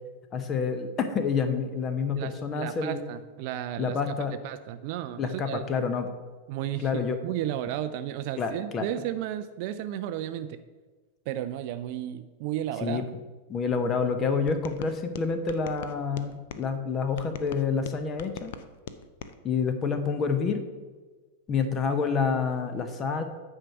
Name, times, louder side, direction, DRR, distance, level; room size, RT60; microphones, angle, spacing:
voice 1, 0.3-3.0 3.8-4.3 5.2-6.1 6.8-7.2 8.4-8.9 12.8-13.0 13.5-18.5 19.4-20.6 21.5-23.2, left 5 dB, 25° left, 8 dB, 0.8 m, -28 dB
voice 2, 2.2-4.2 4.4-5.6 6.5-10.6 11.3-13.0, right 12 dB, 45° right, 11 dB, 0.4 m, -33 dB
sound 1, 14.5-16.7 17.2-19.3, left 8 dB, 55° left, 0.5 m, -42 dB
9.1 x 4.5 x 6.0 m, 1.3 s
figure-of-eight pair, 90°, 0 cm